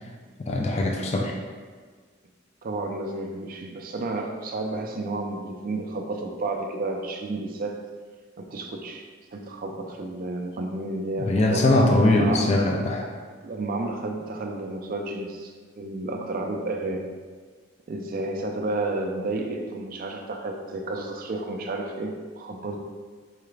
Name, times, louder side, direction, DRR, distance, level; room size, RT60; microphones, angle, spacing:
voice 1, 0.4-1.3 11.2-13.1, left 2 dB, 35° left, 0 dB, 0.4 m, -21 dB
voice 2, 2.6-7.8 8.4-11.7 12.0-12.6 13.2-17.1 17.9-22.8, right 2 dB, 50° right, 3 dB, 0.4 m, -31 dB
4.7 x 2.3 x 3.2 m, 1.5 s
head